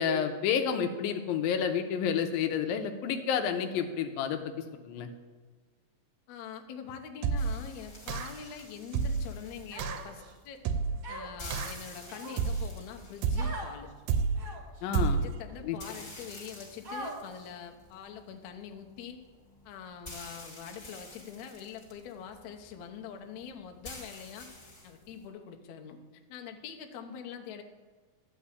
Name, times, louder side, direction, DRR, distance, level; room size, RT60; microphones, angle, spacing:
voice 1, 0.0-4.4 4.8-5.1 14.8-15.2 15.6-15.8, left 7 dB, 85° left, 7 dB, 2.4 m, -29 dB
voice 2, 6.3-10.7 11.1-13.9 15.1-19.2 19.7-24.5 24.8-26.0 26.3-27.6, left 7 dB, 70° left, 4 dB, 1.9 m, -44 dB
sound 1, 7.2-7.7 8.1-8.5 8.9-9.4 9.8-10.1 10.7-11.1 11.5-11.9 12.4-12.8 13.2-13.6 14.1-14.5 14.9-15.4, right 5 dB, 80° right, 2.4 m, -30 dB
sound 2, 7.4-25.2, left 1 dB, 25° left, 1.8 m, -50 dB
Human voice, 9.7-10.3 11.0-11.5 12.1-12.7 13.3-13.7 14.4-14.8 15.5-15.6 16.8-17.4, right 2 dB, 40° right, 1.2 m, -41 dB
11.5 x 5.4 x 8.3 m, 1.4 s
omnidirectional pair, 4.1 m